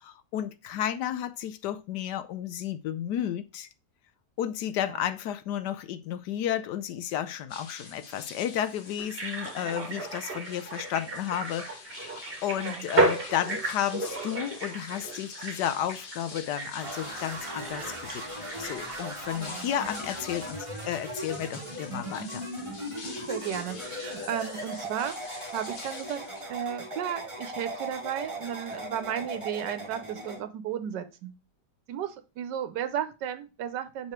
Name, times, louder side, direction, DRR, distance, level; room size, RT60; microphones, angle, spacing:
voice 1, 0.0-3.7 4.4-18.2 18.6-20.6 20.9-22.4, left 10 dB, 75° left, 1.2 m, -32 dB
sound 1, 7.5-26.4, left 4 dB, 35° left, 1.0 m, -46 dB
sound 2, 9.0-19.5 19.8-19.9, right 2 dB, 35° right, 1.7 m, -33 dB
voice 2, 9.6-10.0 12.5-12.9 19.3-19.7 23.0-26.2 26.5-31.3 31.9-34.1, right 9 dB, 80° right, 1.4 m, -34 dB
sound 3, 16.8-30.4, right 1 dB, 20° right, 1.7 m, -38 dB
5.5 x 4.9 x 4.5 m
omnidirectional pair, 1.9 m